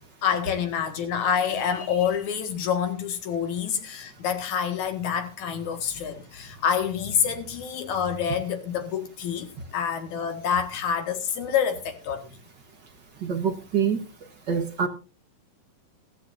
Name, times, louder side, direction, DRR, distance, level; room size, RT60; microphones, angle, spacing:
voice 1, 0.2-9.5 9.7-12.3, left 7 dB, 65° left, 3.0 m, -27 dB
voice 2, 13.2-14.0 14.5-14.9, right 6 dB, 50° right, 1.4 m, -25 dB
16.5 x 14.5 x 2.6 m
omnidirectional pair, 3.8 m